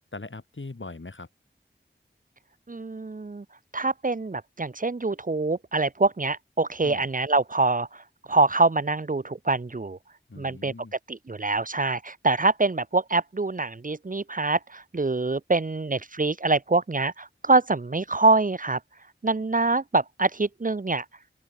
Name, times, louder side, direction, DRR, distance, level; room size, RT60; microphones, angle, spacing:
voice 1, 0.1-1.3 6.8-7.0 10.3-10.9, left 3 dB, 75° left, 6.4 m, -40 dB
voice 2, 2.7-3.4 3.7-10.0 10.4-10.7 11.1-18.8 19.2-21.0, right 3 dB, 45° right, 0.8 m, -25 dB
open air
wide cardioid pair, 45°, 20 cm